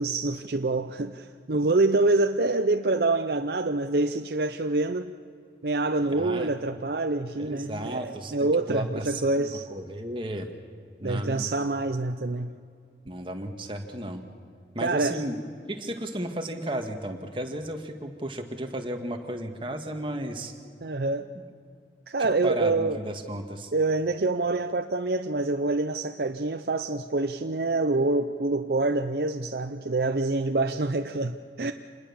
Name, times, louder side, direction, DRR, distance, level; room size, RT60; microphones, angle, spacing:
voice 1, 0.0-5.1 5.6-9.7 11.0-12.5 14.8-15.2 20.8-21.3 22.1-23.0 23.7-31.7, right 2 dB, 60° right, 6 dB, 0.7 m, -26 dB
voice 2, 6.2-6.5 7.4-10.5 11.0-11.5 13.1-14.2 14.7-15.4 15.7-20.5 22.2-23.7, right 1 dB, 30° right, 4 dB, 1.9 m, -34 dB
27.0 x 20.5 x 7.2 m, 2.2 s
head